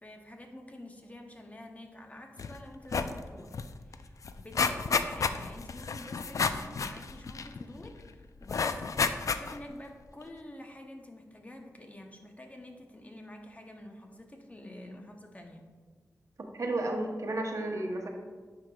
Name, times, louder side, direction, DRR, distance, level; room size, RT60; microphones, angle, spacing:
voice 1, 0.0-3.6 3.8-8.8 9.3-15.7, left 1 dB, 25° left, 3 dB, 0.8 m, -48 dB
sound 1, 2.4-2.6 2.8-3.2 3.5-3.6 3.9-7.9 8.5-9.7 10.2-10.3, left 5 dB, 60° left, 0.3 m, -31 dB
voice 2, 16.6-18.1, right 2 dB, 60° right, 2 dB, 0.8 m, -32 dB
9.6 x 4.8 x 2.3 m, 1.4 s
cardioid pair, 55°, 6 cm